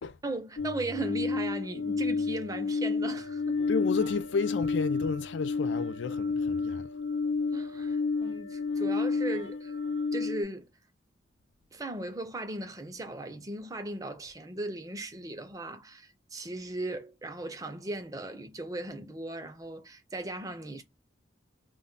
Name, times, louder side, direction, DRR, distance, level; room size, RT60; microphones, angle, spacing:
voice 1, 0.2-3.7 7.5-9.8 10.1-10.7 11.7-20.8, right 2 dB, 20° right, 0.5 m, -37 dB
sound 1, 0.6-10.4, left 4 dB, 90° left, 0.8 m, -30 dB
voice 2, 3.7-6.9, left 5 dB, 75° left, 0.4 m, -32 dB
2.2 x 2.2 x 3.8 m
head